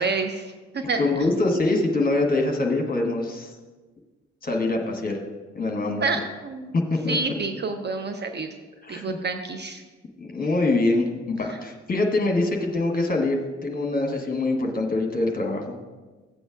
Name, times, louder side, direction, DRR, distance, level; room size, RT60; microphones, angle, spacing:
voice 1, 0.0-1.0 6.0-6.8 7.1-8.5 8.9-9.8, right 4 dB, 30° right, 6 dB, 0.6 m, -28 dB
voice 2, 1.0-3.5 4.4-5.2 5.5-6.2 7.0-7.2 8.8-9.2 10.2-15.6, left 2 dB, 25° left, 2 dB, 1.4 m, -24 dB
14.0 x 7.9 x 2.4 m, 1.3 s
figure-of-eight pair, 45°, 36 cm